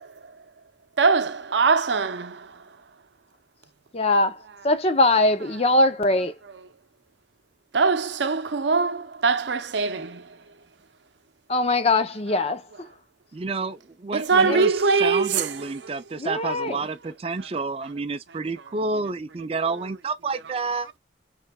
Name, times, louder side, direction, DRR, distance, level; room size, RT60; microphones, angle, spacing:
voice 1, 1.0-2.3 7.7-10.2 14.1-15.5 19.7-19.8, right 4 dB, 70° right, 0.6 m, -22 dB
voice 2, 3.9-4.4 4.6-6.3 11.5-12.6 14.4-14.6 16.2-16.8, left 2 dB, 35° left, 0.6 m, -21 dB
voice 3, 13.3-20.9, right 3 dB, 30° right, 0.4 m, -29 dB
5.6 x 3.3 x 2.2 m
head